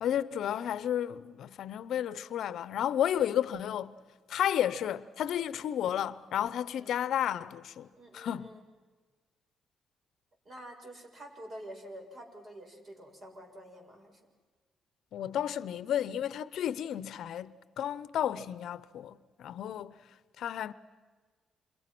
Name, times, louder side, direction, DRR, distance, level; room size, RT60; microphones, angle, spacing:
voice 1, 0.0-4.0 4.3-7.9 8.1-8.5 15.1-20.0 20.4-20.7, left 10 dB, 75° left, 0.8 m, -32 dB
voice 2, 8.0-8.6 10.4-14.2, right 1 dB, 40° right, 7.4 m, -48 dB
30.0 x 27.5 x 6.1 m
cardioid pair, 90°, 0 cm